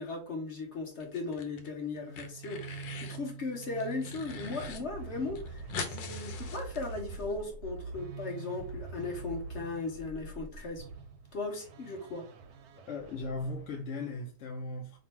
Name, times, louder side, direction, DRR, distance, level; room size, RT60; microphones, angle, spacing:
voice 1, 0.0-10.8 11.3-12.2, left 3 dB, 45° left, 1.2 m, -37 dB
sound 1, 1.0-1.7 2.0-3.2 3.6-4.8 5.1-5.2 5.4-7.3, left 5 dB, 85° left, 1.4 m, -42 dB
sound 2, 2.0-13.9, right 4 dB, 70° right, 1.0 m, -44 dB
voice 2, 12.8-15.0, left 3 dB, 65° left, 0.7 m, -38 dB
3.2 x 2.5 x 4.4 m
omnidirectional pair, 2.0 m